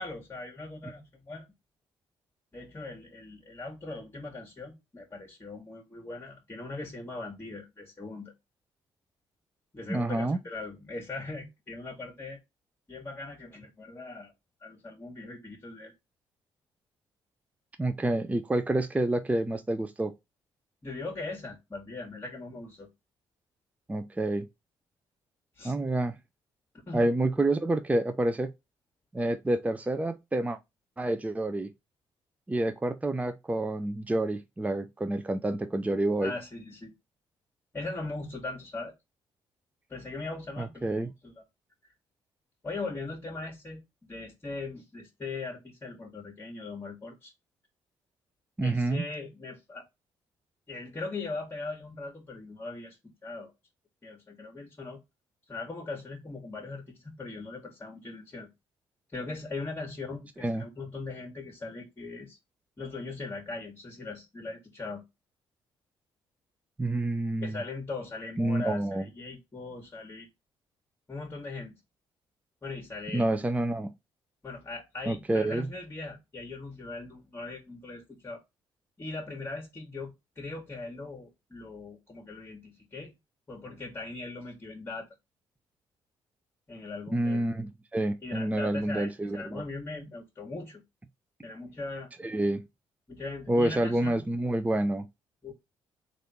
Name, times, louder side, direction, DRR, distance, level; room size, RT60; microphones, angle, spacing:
voice 1, 0.0-1.5 2.5-8.3 9.7-12.4 12.9-14.3 14.6-15.9 20.8-22.9 25.6-25.7 26.9-27.1 36.2-36.9 37.7-38.9 39.9-41.3 42.6-47.3 48.6-49.9 50.7-53.0 53.2-53.5 54.0-55.0 55.5-58.5 59.1-62.4 62.8-65.0 67.4-70.3 71.1-71.8 72.6-73.3 74.4-78.4 79.0-83.1 83.5-85.1 86.7-87.5 88.2-90.8 91.4-92.1 93.1-94.3 95.4-95.5, left 3 dB, 25° left, 1.5 m, -40 dB
voice 2, 9.9-10.4 17.8-20.1 23.9-24.5 25.6-26.1 26.9-28.5 29.1-30.6 31.0-31.7 32.5-36.3 40.6-41.1 48.6-49.0 60.4-60.7 66.8-67.6 68.4-69.0 73.1-73.9 75.1-75.7 87.1-89.6 92.2-92.6 93.5-95.1, right 1 dB, 15° right, 0.6 m, -28 dB
3.3 x 2.6 x 4.2 m
supercardioid pair, 60°, 10 cm